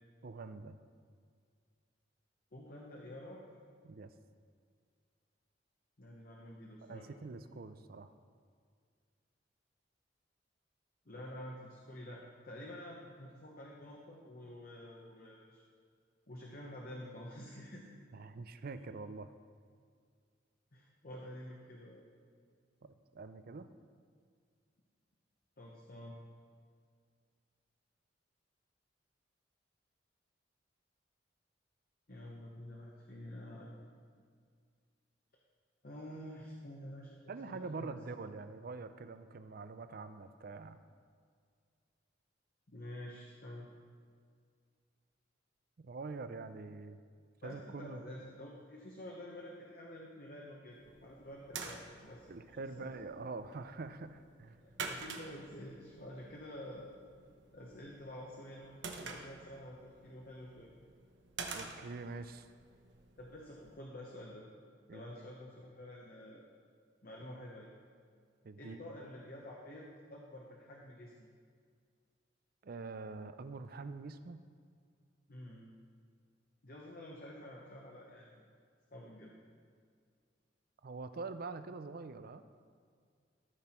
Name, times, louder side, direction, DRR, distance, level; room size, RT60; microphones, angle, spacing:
voice 1, 0.2-0.8 3.8-4.1 6.8-8.1 18.1-19.3 22.8-23.7 37.3-40.8 45.8-47.0 47.4-48.0 52.3-54.6 61.5-62.5 64.9-65.1 68.4-68.8 72.6-74.4 80.8-82.4, right 3 dB, 55° right, 11 dB, 0.5 m, -45 dB
voice 2, 2.5-3.4 6.0-7.1 11.0-15.6 16.3-17.9 20.7-22.0 25.6-26.2 32.1-33.8 35.8-38.0 42.7-43.7 47.4-52.3 52.8-52.9 54.6-56.9 57.5-60.7 63.2-64.5 64.9-66.4 67.0-67.7 68.6-71.3 75.3-75.8 76.6-78.3 78.9-79.3, left 1 dB, 55° left, -2 dB, 1.1 m, -49 dB
sound 1, 50.7-63.8, right 4 dB, 75° right, 1.0 m, -49 dB
14.0 x 6.2 x 4.4 m, 2.1 s
head